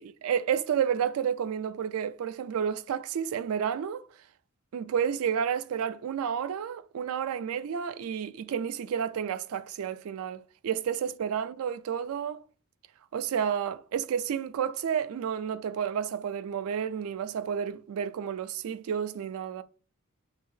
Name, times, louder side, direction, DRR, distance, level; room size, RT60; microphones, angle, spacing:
voice 1, 0.0-4.0 4.7-12.4 13.1-19.6, right 8 dB, 80° right, 0.3 m, -31 dB
6.7 x 2.7 x 2.7 m
head